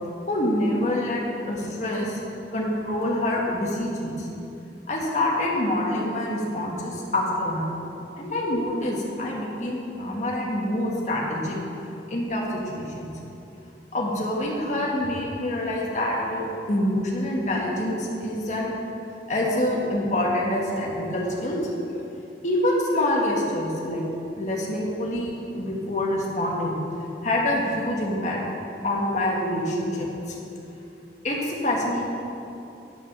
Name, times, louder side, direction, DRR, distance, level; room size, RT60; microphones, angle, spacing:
voice 1, 0.3-2.2 2.5-4.3 4.9-7.7 8.2-11.6 12.1-13.1 13.9-18.7 19.3-21.6 21.9-22.0 22.4-24.1 24.4-26.8 27.2-28.4 28.8-30.3 31.2-32.1, left 1 dB, 40° left, -3 dB, 1.5 m, -26 dB
9.5 x 5.9 x 6.1 m, 2.8 s
head